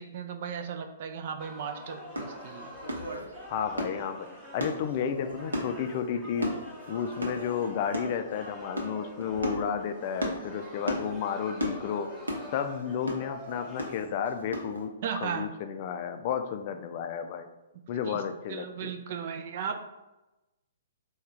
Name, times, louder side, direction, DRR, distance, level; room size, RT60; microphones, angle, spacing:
voice 1, 0.0-2.7 15.0-15.5 18.0-18.2 18.5-19.8, right 7 dB, 45° right, 7 dB, 0.4 m, -36 dB
sound 1, 1.4-13.9, equal, 10° right, 0.9 m, -46 dB
sound 2, 2.1-14.8, equal, 75° right, 0.8 m, -37 dB
voice 2, 3.5-4.3 4.5-6.5 6.9-12.1 12.5-14.9 15.2-17.5 17.9-18.9, left 7 dB, 40° left, 8 dB, 0.4 m, -32 dB
3.6 x 2.3 x 4.4 m, 1.0 s
figure-of-eight pair, 120°, 0 cm